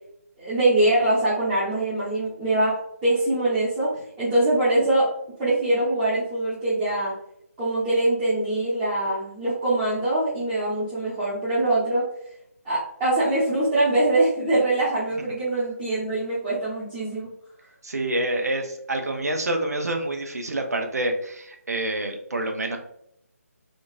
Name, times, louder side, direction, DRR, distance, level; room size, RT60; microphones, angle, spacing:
voice 1, 0.4-5.1 5.4-7.1 7.6-12.1 12.6-17.3, right 2 dB, 15° right, -11 dB, 0.8 m, -23 dB
voice 2, 17.8-22.8, right 1 dB, 85° right, 4 dB, 0.6 m, -27 dB
3.7 x 2.4 x 2.4 m, 0.73 s
figure-of-eight pair, 160°, 8 cm